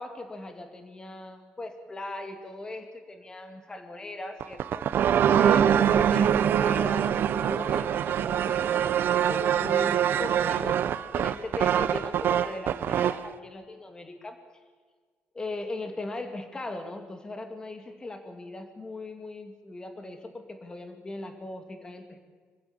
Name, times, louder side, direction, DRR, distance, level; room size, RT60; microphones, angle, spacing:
voice 1, 0.0-4.9 5.4-14.4 15.3-22.2, left 2 dB, 20° left, 7 dB, 2.5 m, -39 dB
sound 1, 4.4-13.3, right 9 dB, 60° right, 0.9 m, -24 dB
26.5 x 15.5 x 8.7 m, 1.5 s
cardioid pair, 160°, 4 cm